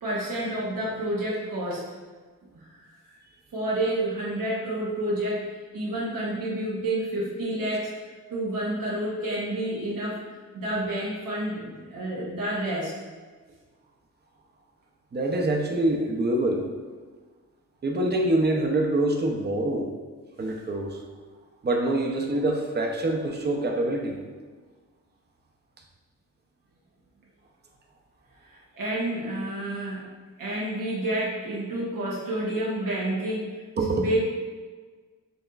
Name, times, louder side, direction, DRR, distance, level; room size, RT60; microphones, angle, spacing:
voice 1, 0.0-1.9 2.5-2.7 3.5-5.4 5.7-7.9 8.3-10.2 10.5-12.9 28.5-30.0 30.4-33.5 33.9-34.2, right 1 dB, 90° right, -6 dB, 0.9 m, -29 dB
voice 2, 15.1-16.7 17.8-19.9 20.4-21.0 21.6-24.2 33.8-34.0, right 1 dB, 30° right, 1 dB, 0.6 m, -25 dB
5.3 x 2.9 x 2.3 m, 1.4 s
wide cardioid pair, 85°, 32 cm